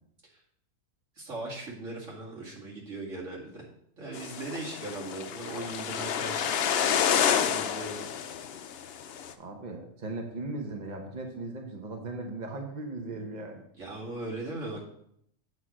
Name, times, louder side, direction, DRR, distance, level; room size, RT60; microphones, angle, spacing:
voice 1, 1.2-3.6 4.0-6.6 7.3-8.2 13.8-14.8, right 2 dB, 50° right, -4 dB, 2.6 m, -39 dB
sound 1, 4.1-9.3, left 8 dB, 70° left, 0.6 m, -29 dB
voice 2, 9.4-13.6, right 2 dB, 35° right, 2 dB, 0.8 m, -38 dB
8.2 x 4.5 x 6.1 m, 0.71 s
omnidirectional pair, 1.6 m